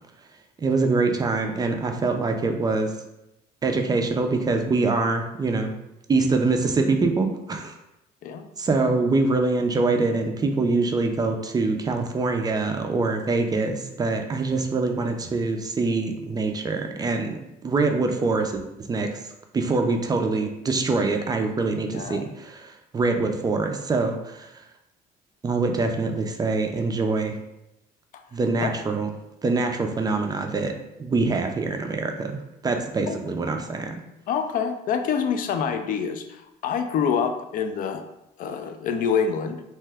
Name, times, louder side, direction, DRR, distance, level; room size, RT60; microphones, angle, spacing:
voice 1, 0.6-2.9 3.6-5.7 6.1-7.7 8.6-18.6 18.9-19.1 19.5-24.5 25.4-27.3 28.3-29.1 29.4-30.7 31.0-34.0, right 3 dB, 25° right, 4 dB, 0.3 m, -24 dB
voice 2, 21.9-22.2 28.6-28.7 33.1-33.2 34.3-38.0 38.4-39.6, left 6 dB, 55° left, 7 dB, 0.4 m, -26 dB
2.8 x 2.2 x 3.3 m, 0.90 s
cardioid pair, 110°, 17 cm